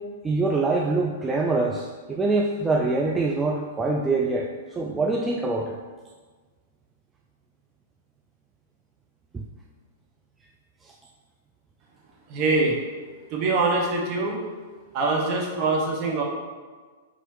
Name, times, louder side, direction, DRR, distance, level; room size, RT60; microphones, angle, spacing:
voice 1, 0.2-5.8 9.3-9.4, right 3 dB, 15° right, -1 dB, 0.3 m, -24 dB
voice 2, 12.3-12.7 13.3-14.4 14.9-16.2, right 3 dB, 40° right, -2 dB, 1.0 m, -23 dB
4.4 x 3.0 x 3.1 m, 1.4 s
figure-of-eight pair, 105°, 0 cm